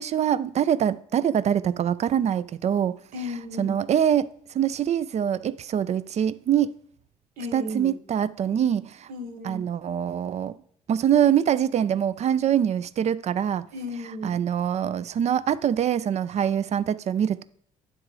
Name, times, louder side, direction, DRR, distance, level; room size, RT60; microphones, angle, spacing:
voice 1, 0.0-3.0 3.6-6.8 7.5-9.1 9.4-10.5 10.9-13.6 14.2-17.4, right 9 dB, 45° right, 0.4 m, -24 dB
voice 2, 3.1-3.8 7.4-7.9 9.1-9.6 13.7-14.4, left 2 dB, 65° right, 1.2 m, -34 dB
8.8 x 3.7 x 4.6 m
hypercardioid pair, 45°, 16 cm